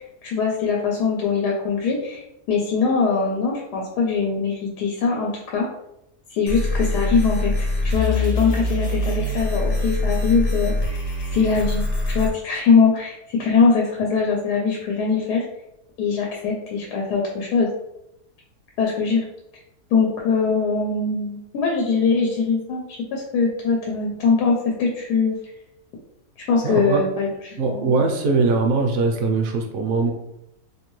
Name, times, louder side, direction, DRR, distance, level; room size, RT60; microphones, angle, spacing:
voice 1, 0.0-5.7 6.3-11.0 11.3-15.5 16.0-17.7 18.8-19.2 19.9-25.3 26.4-28.0, left 5 dB, 90° left, -1 dB, 1.2 m, -22 dB
sound 1, 6.5-12.3, left 2 dB, 45° left, 0.8 m, -23 dB
voice 2, 26.6-27.0 27.6-30.1, right 3 dB, 65° right, 3 dB, 0.9 m, -21 dB
2.9 x 2.6 x 3.0 m, 0.83 s
omnidirectional pair, 1.7 m